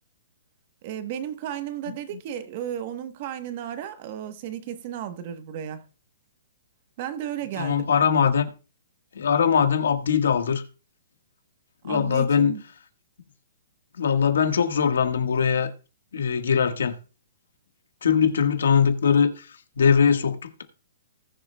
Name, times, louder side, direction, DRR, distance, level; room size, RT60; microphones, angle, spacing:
voice 1, 0.8-5.8 7.0-7.9 11.9-12.6, right 10 dB, 30° right, 1.0 m, -34 dB
voice 2, 7.5-8.5 9.1-10.6 11.8-12.6 14.0-15.7 16.1-16.9 18.0-19.5 19.8-20.6, left 7 dB, 80° left, 1.4 m, -21 dB
19.5 x 6.8 x 2.2 m
hypercardioid pair, 175°, 0 cm